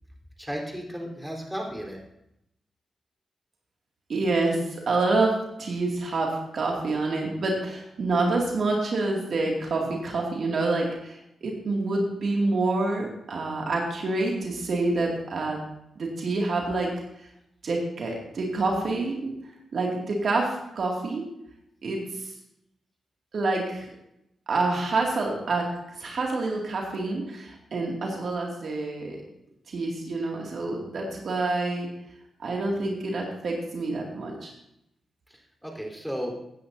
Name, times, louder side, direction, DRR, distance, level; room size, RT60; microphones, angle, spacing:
voice 1, 0.4-2.0 35.3-36.3, equal, 5° right, -1 dB, 4.0 m, -34 dB
voice 2, 4.1-5.3 5.6-15.6 16.0-16.9 17.2-17.3 17.6-19.3 19.7-21.2 21.8-22.3 23.3-23.9 24.5-25.6 26.0-29.2 29.7-31.9 32.4-34.5, right 2 dB, 65° right, -1 dB, 2.4 m, -27 dB
16.0 x 9.7 x 2.8 m, 0.81 s
supercardioid pair, 50°, 0 cm